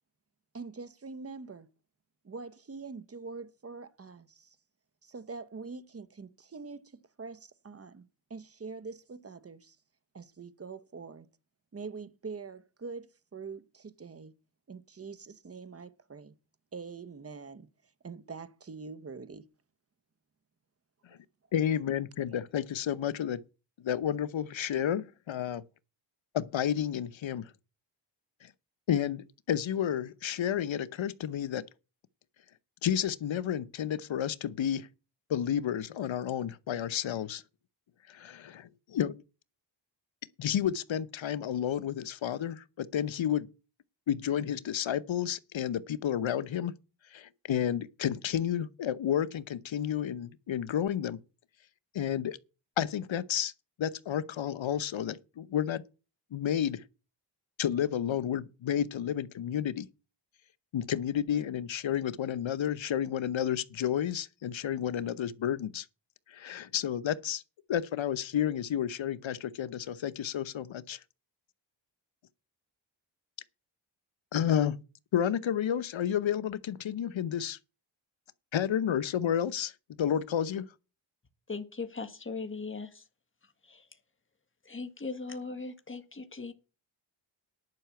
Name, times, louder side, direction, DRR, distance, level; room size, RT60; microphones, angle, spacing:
voice 1, 0.5-1.7 2.2-4.6 5.0-8.0 8.3-9.8 10.1-11.3 11.7-14.3 14.7-16.3 16.7-17.7 18.0-19.4 21.1-21.2 22.3-22.4, right 4 dB, 30° right, 1.0 m, -44 dB
voice 2, 21.5-23.4 23.8-25.6 26.3-27.5 28.4-28.5 28.9-31.6 32.8-34.9 35.3-37.4 38.1-39.1 40.4-43.5 44.1-46.7 47.1-51.2 51.9-52.4 52.8-53.5 53.8-55.8 56.3-56.8 57.6-59.9 60.7-65.9 66.3-67.4 67.7-71.0 74.3-74.8 75.1-77.6 78.5-79.7 80.0-80.6, left 9 dB, 80° left, 0.9 m, -31 dB
voice 3, 81.5-83.0 83.6-83.9 84.6-86.5, left 4 dB, 25° left, 1.8 m, -39 dB
11.0 x 5.7 x 8.2 m
wide cardioid pair, 105°, 46 cm